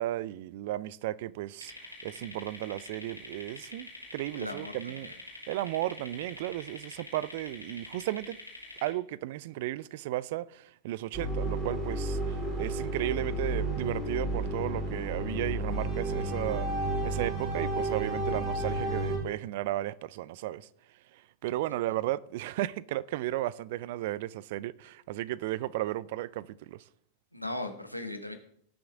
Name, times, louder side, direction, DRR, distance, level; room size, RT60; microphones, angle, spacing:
voice 1, 0.0-1.7 2.0-5.1 5.5-8.4 8.8-16.7 17.0-20.7 21.4-26.8, right 15 dB, 50° right, 0.4 m, -34 dB
sound 1, 1.6-8.9, left 1 dB, 90° right, 3.2 m, -46 dB
voice 2, 4.4-5.2 27.3-28.4, left 2 dB, 90° left, 1.3 m, -38 dB
sound 2, 11.1-19.2, right 1 dB, 20° right, 4.0 m, -32 dB
18.0 x 6.3 x 3.6 m
figure-of-eight pair, 90°, 0 cm